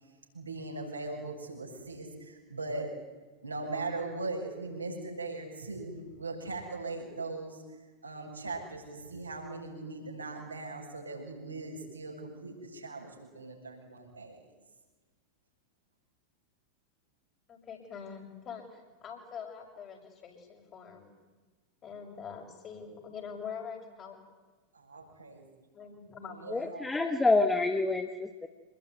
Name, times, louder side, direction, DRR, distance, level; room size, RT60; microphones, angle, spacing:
voice 1, 0.3-2.9 3.4-7.6 8.0-14.4 24.7-25.5 26.2-26.9, right 3 dB, 80° right, -1 dB, 7.8 m, -39 dB
voice 2, 17.5-21.1 21.8-24.2 25.7-26.7, left 6 dB, 30° left, 2 dB, 6.8 m, -44 dB
voice 3, 26.5-28.5, left 3 dB, 10° left, 7 dB, 1.6 m, -27 dB
27.5 x 21.5 x 9.7 m, 1.3 s
figure-of-eight pair, 90°, 0 cm